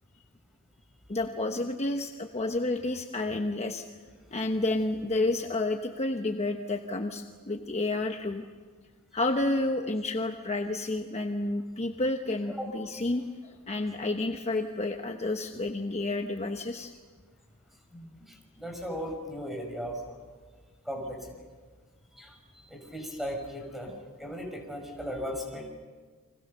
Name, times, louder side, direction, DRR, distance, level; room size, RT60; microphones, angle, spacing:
voice 1, 1.1-3.8 4.3-8.5 9.1-16.9, left 2 dB, 30° left, 5 dB, 1.0 m, -30 dB
voice 2, 17.9-20.2 20.8-21.2 22.2-22.4 22.7-23.9 24.2-25.7, equal, ahead, 3 dB, 5.8 m, -37 dB
30.0 x 25.0 x 6.8 m, 1.5 s
head